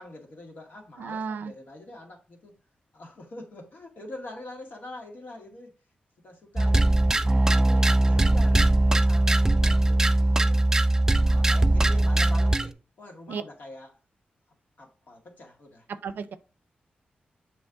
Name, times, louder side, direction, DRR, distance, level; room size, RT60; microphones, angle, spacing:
voice 1, 0.0-2.5 2.9-5.7 6.2-7.0 7.5-10.6 11.2-14.0 14.8-15.9, left 2 dB, 65° left, 1.9 m, -44 dB
voice 2, 1.0-1.5 13.3-13.4 15.9-16.4, right 5 dB, 80° right, 0.6 m, -33 dB
sound 1, 6.6-12.7, right 2 dB, 15° right, 0.3 m, -21 dB
7.7 x 3.2 x 3.8 m
wide cardioid pair, 120°, 3 cm